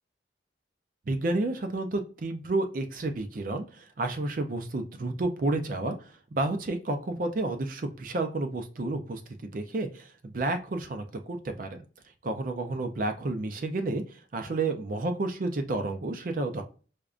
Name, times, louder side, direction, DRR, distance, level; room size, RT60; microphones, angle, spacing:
voice 1, 1.1-11.8 12.2-16.6, right 2 dB, 50° right, 6 dB, 0.4 m, -31 dB
4.9 x 2.2 x 2.4 m, 0.37 s
head